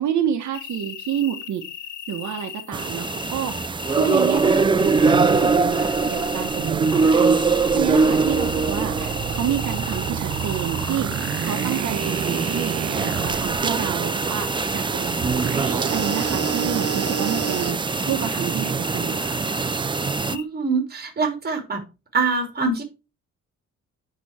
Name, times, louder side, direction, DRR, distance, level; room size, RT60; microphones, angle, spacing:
voice 1, 0.0-1.6 2.1-12.8 13.0-15.5 15.9-17.8 18.1-19.4, right 9 dB, 75° right, 1.4 m, -29 dB
sound 1, 0.5-20.4, left 9 dB, 85° left, 1.5 m, -37 dB
sound 2, 2.7-20.4, right 4 dB, 15° right, 0.3 m, -23 dB
sound 3, 4.3-13.6 15.2-17.7, right 8 dB, 55° right, 0.9 m, -30 dB
voice 2, 20.3-21.8 22.1-22.8, right 4 dB, 35° right, 2.9 m, -24 dB
8.6 x 6.2 x 4.4 m
wide cardioid pair, 175°, 29 cm